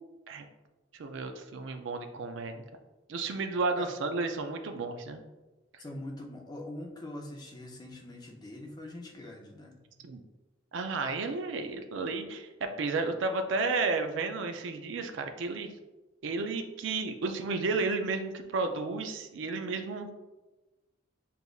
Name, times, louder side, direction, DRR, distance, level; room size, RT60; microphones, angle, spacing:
voice 1, 1.0-2.6 3.1-5.2 10.0-10.2 10.7-15.7 16.2-20.1, right 3 dB, 70° right, 6 dB, 0.4 m, -32 dB
voice 2, 5.8-9.8, left 1 dB, 20° left, 1 dB, 0.5 m, -43 dB
6.8 x 2.5 x 2.3 m, 1.1 s
head